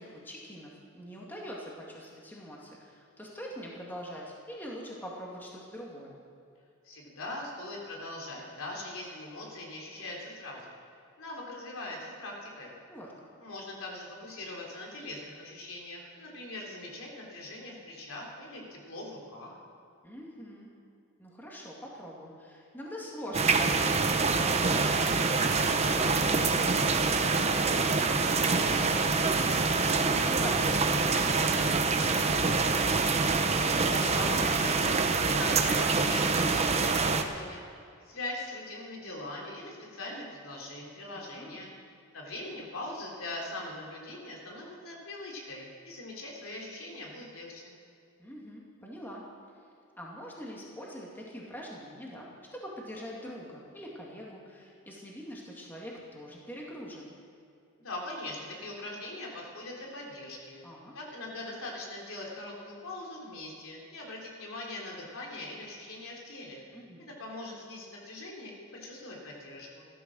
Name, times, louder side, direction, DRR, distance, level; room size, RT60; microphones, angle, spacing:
voice 1, 0.0-6.2 12.9-13.1 20.0-20.7 21.2-29.5 29.8-32.8 41.1-41.6 48.2-49.2 50.0-57.1 60.6-61.0 66.7-67.1, equal, 10° left, -3 dB, 2.3 m, -44 dB
voice 2, 6.8-10.8 11.2-12.7 13.4-19.6 33.5-41.7 42.1-47.7 57.8-60.6 60.9-66.6 67.2-69.8, left 2 dB, 80° left, -2 dB, 3.5 m, -41 dB
sound 1, 23.3-37.2, right 4 dB, 30° right, 0.8 m, -26 dB
15.0 x 13.0 x 6.3 m, 2.5 s
head